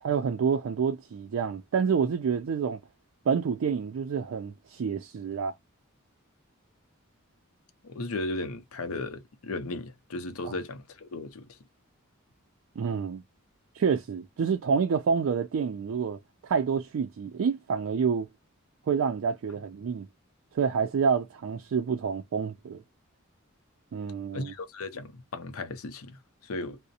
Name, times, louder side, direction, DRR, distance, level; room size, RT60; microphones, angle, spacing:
voice 1, 0.0-2.8 3.3-5.5 10.4-10.5 12.8-13.2 13.7-18.3 18.9-20.1 20.5-22.8 23.9-24.5, right 6 dB, 65° right, 0.3 m, -28 dB
voice 2, 7.8-11.6 24.3-26.8, left 2 dB, 80° left, 0.6 m, -36 dB
2.4 x 2.0 x 2.6 m
head